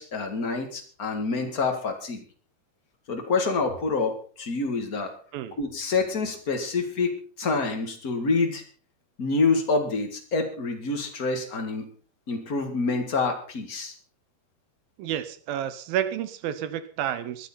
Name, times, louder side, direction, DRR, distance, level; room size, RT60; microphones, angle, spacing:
voice 1, 0.0-2.2 3.1-5.1 5.6-8.6 9.2-11.9 12.3-13.9, left 4 dB, 35° left, 4 dB, 1.7 m, -27 dB
voice 2, 15.0-17.5, right 10 dB, 75° right, 12 dB, 2.6 m, -30 dB
21.0 x 11.5 x 4.3 m, 0.42 s
omnidirectional pair, 4.4 m